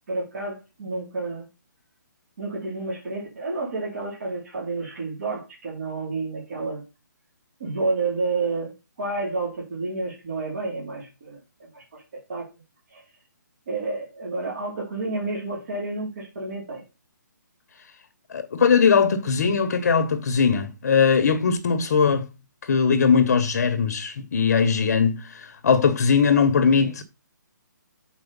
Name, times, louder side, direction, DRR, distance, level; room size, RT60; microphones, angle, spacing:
voice 1, 0.1-1.5 2.4-6.8 7.6-8.7 9.0-12.0 12.3-12.5 12.9-13.0 13.7-16.8 26.8-26.9, right 3 dB, 45° right, 3.0 m, -30 dB
voice 2, 18.3-22.3 22.6-27.0, left 6 dB, 50° left, 0.9 m, -20 dB
7.0 x 4.5 x 5.2 m
hypercardioid pair, 170°, 10 cm